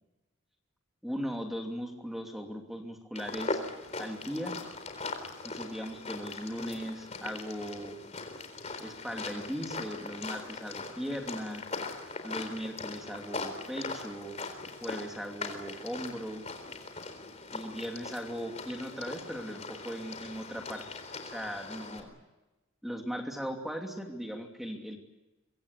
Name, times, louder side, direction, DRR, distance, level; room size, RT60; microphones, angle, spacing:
voice 1, 1.0-3.6 4.0-4.6 5.4-8.0 8.8-11.7 12.2-14.4 14.8-16.5 17.5-22.1 22.8-25.0, equal, ahead, 2 dB, 2.7 m, -38 dB
sound 1, 3.2-22.0, left 3 dB, 30° left, 3.9 m, -40 dB
25.0 x 24.0 x 8.3 m, 1.1 s
head